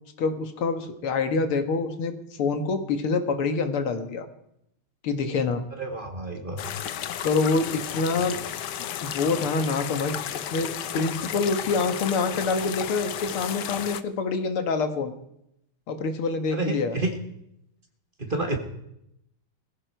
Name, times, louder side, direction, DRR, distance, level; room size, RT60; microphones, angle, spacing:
voice 1, 0.2-4.3 5.0-5.6 7.2-8.4 9.0-15.1 15.9-17.0, left 4 dB, 85° left, 8 dB, 2.5 m, -26 dB
voice 2, 5.8-6.6 16.5-17.2 18.2-18.6, right 2 dB, 25° right, 5 dB, 1.8 m, -29 dB
sound 1, 6.6-14.0, left 10 dB, 60° left, 1.3 m, -33 dB
19.5 x 16.0 x 4.7 m, 0.78 s
omnidirectional pair, 2.3 m